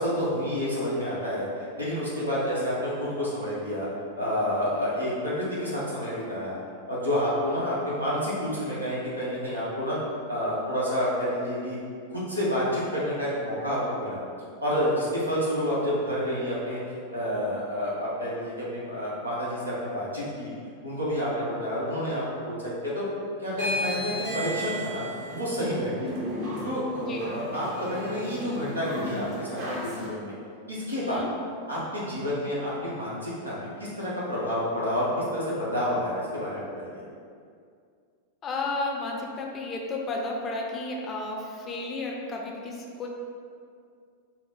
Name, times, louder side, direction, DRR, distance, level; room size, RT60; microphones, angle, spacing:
voice 1, 0.0-3.9 4.2-6.6 6.9-10.0 10.3-11.8 12.1-14.2 14.6-16.8 17.1-20.5 20.8-23.0 23.4-25.0 25.3-26.1 26.6-30.3 30.7-31.2 31.7-36.9, equal, 85° right, -8 dB, 1.0 m, -29 dB
sound 1, 23.5-30.1, left 1 dB, 45° right, 0.9 m, -34 dB
voice 2, 31.0-31.3 38.4-43.1, left 2 dB, 25° left, -1 dB, 0.5 m, -33 dB
4.8 x 2.1 x 3.5 m, 2.3 s
figure-of-eight pair, 90°, 0 cm